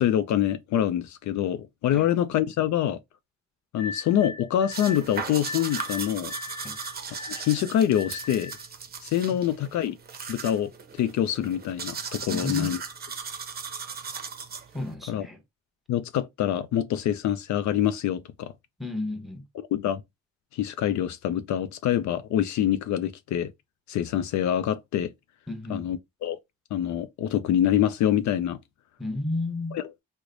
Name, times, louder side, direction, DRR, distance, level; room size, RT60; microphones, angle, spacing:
voice 1, 0.0-3.0 3.7-6.3 7.4-8.5 9.0-10.0 10.3-12.8 15.1-15.3 15.9-18.5 19.6-20.0 20.5-23.5 23.9-25.1 25.7-26.4 26.7-28.6 29.7-29.8, left 11 dB, 70° left, 0.4 m, -25 dB
sound 1, 3.8-8.7, left 3 dB, 45° left, 0.9 m, -40 dB
sound 2, 4.7-14.9, right 6 dB, 30° right, 0.7 m, -37 dB
voice 2, 12.3-12.7 14.7-15.4 18.8-19.4 25.5-25.9 29.0-29.8, left 2 dB, ahead, 0.8 m, -32 dB
3.1 x 2.1 x 3.8 m
cardioid pair, 90°, 30 cm